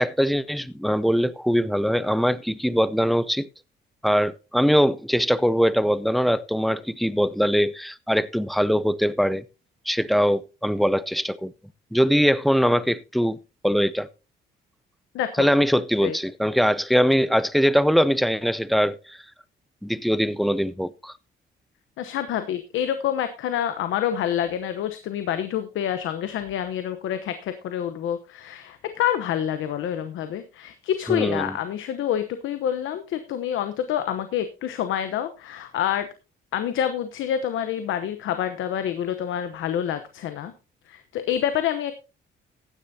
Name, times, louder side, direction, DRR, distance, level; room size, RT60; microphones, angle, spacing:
voice 1, 0.0-3.5 4.0-9.4 9.9-11.5 11.9-13.4 13.6-14.1 15.4-19.2 19.8-21.1 31.1-31.6, equal, ahead, 0.5 m, -22 dB
voice 2, 15.1-15.5 16.0-16.1 22.0-36.1 36.5-40.5 40.9-41.9, left 10 dB, 80° left, 0.9 m, -27 dB
15.0 x 10.0 x 2.7 m
cardioid pair, 90°, 20 cm